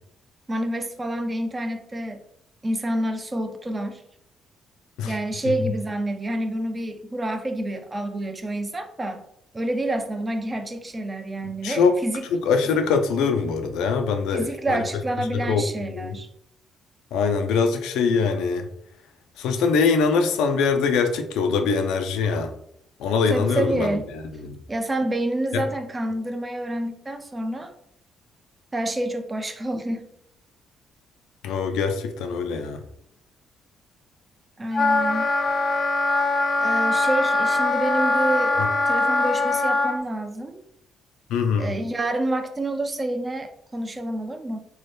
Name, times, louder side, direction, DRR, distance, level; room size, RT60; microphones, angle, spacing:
voice 1, 0.5-2.2 2.6-4.0 5.0-9.2 9.5-12.2 14.3-16.3 23.3-24.1 24.7-27.7 28.7-30.1 34.6-35.3 36.6-38.6 38.9-40.6 41.6-44.6, right 1 dB, 25° right, 7 dB, 0.4 m, -28 dB
voice 2, 11.6-12.0 12.3-14.8 15.3-16.2 17.1-18.7 19.4-22.5 23.0-24.6 25.5-25.6 31.4-32.8 38.6-38.7 41.3-41.8, left 5 dB, 90° left, 6 dB, 0.3 m, -23 dB
Wind instrument woodwind instrument, 34.7-39.9, left 2 dB, 30° left, 0.5 m, -22 dB
2.7 x 2.1 x 3.2 m, 0.72 s
cardioid pair, 90°, 0 cm